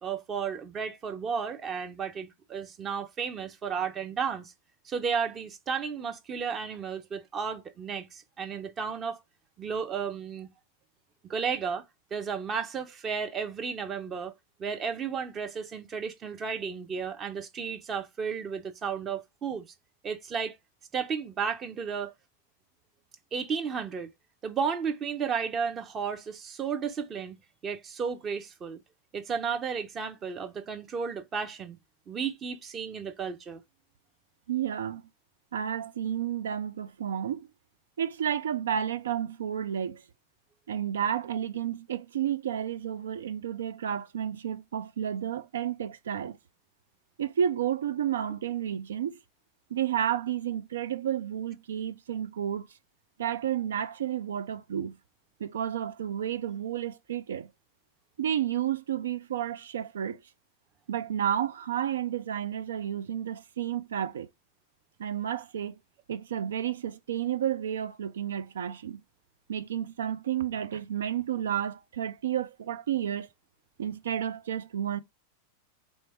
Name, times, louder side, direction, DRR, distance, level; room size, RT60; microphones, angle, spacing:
voice 1, 0.0-4.5 4.8-9.2 9.6-10.5 11.2-11.8 12.1-14.3 14.6-19.6 20.0-20.6 20.9-22.1 23.3-24.1 24.4-28.8 29.1-31.8 32.1-33.6, right 6 dB, 25° right, 0.7 m, -33 dB
voice 2, 34.5-35.1 35.5-37.5 38.0-40.0 40.7-46.4 47.2-49.2 49.7-52.7 53.2-55.0 55.4-57.5 58.2-60.2 60.9-64.3 65.0-65.7 66.1-69.0 69.5-73.3 73.8-75.0, right 9 dB, 65° right, 0.4 m, -31 dB
3.4 x 3.2 x 4.2 m
figure-of-eight pair, 90°, 0 cm